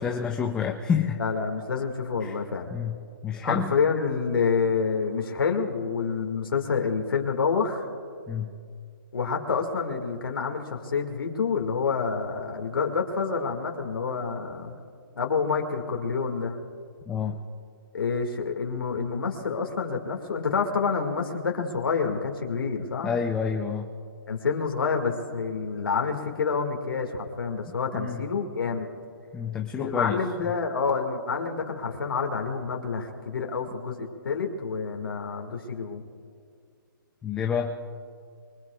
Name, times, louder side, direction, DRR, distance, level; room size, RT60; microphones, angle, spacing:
voice 1, 0.0-1.2 2.2-2.4 2.7-3.0 3.2-3.7 8.3-8.6 17.1-17.4 23.0-23.9 27.9-28.2 29.3-30.2 37.2-37.8, left 7 dB, 5° left, 3 dB, 0.4 m, -28 dB
voice 2, 1.2-2.7 3.4-7.9 9.1-14.8 15.2-16.6 17.9-23.1 24.3-28.9 29.8-36.0, left 5 dB, 75° left, 2 dB, 1.9 m, -28 dB
23.5 x 22.0 x 2.4 m, 2.2 s
hypercardioid pair, 155°, 12 cm